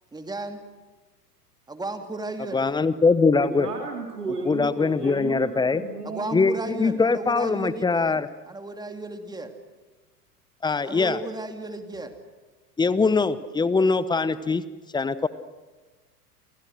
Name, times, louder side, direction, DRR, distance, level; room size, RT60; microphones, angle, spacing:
voice 1, 0.1-0.6 1.7-2.6 6.0-9.5 10.8-12.1, right 2 dB, 10° right, 6 dB, 2.5 m, -34 dB
voice 2, 2.5-3.7 4.5-5.8 6.3-8.3 10.6-11.2 12.8-14.6 14.9-15.3, left 4 dB, 10° left, 16 dB, 0.9 m, -22 dB
voice 3, 3.4-6.5, right 4 dB, 75° right, 1 dB, 3.5 m, -33 dB
29.0 x 28.0 x 6.4 m, 1.3 s
figure-of-eight pair, 90°, 48 cm